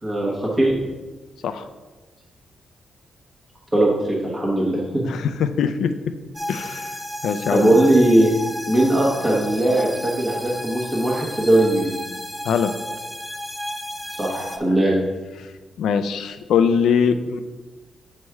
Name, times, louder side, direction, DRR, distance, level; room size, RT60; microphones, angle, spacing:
voice 1, 0.0-0.7 3.7-5.0 7.5-8.3 8.7-11.9 14.2-15.0, right 1 dB, 15° right, -4 dB, 1.1 m, -19 dB
voice 2, 5.0-5.9 6.5-6.9 7.2-7.8 12.5-12.7 15.8-17.4, left 7 dB, 80° left, 10 dB, 0.4 m, -21 dB
sound 1, 6.3-14.6, equal, ahead, 0.4 m, -32 dB
7.5 x 3.1 x 4.6 m, 1.2 s
wide cardioid pair, 160°, 0 cm